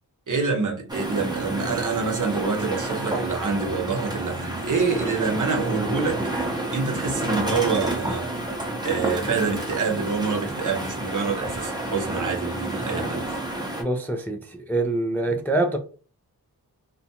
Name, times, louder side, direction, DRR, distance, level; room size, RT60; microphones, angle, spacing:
voice 1, 0.3-6.2 6.7-8.3 8.8-13.4, right 4 dB, 50° right, 0.8 m, -26 dB
sound 1, 0.9-13.8, right 1 dB, 10° right, 0.7 m, -29 dB
voice 2, 13.8-15.8, right 2 dB, 5° left, 0.3 m, -25 dB
2.4 x 2.2 x 2.7 m
cardioid pair, 55°, 39 cm